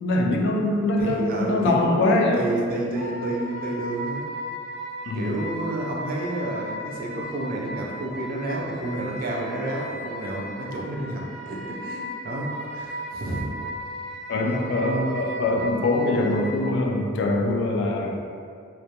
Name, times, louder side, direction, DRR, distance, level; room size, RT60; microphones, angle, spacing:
voice 1, 0.0-2.4 5.0-5.3 14.3-18.2, left 2 dB, 60° left, 0 dB, 0.3 m, -23 dB
voice 2, 1.0-2.0 2.3-4.3 5.1-13.5 14.4-14.8, right 1 dB, 45° right, -2 dB, 0.4 m, -30 dB
Wind instrument woodwind instrument, 2.9-16.7, equal, 90° right, 0.6 m, -36 dB
2.2 x 2.1 x 2.8 m, 2.2 s
head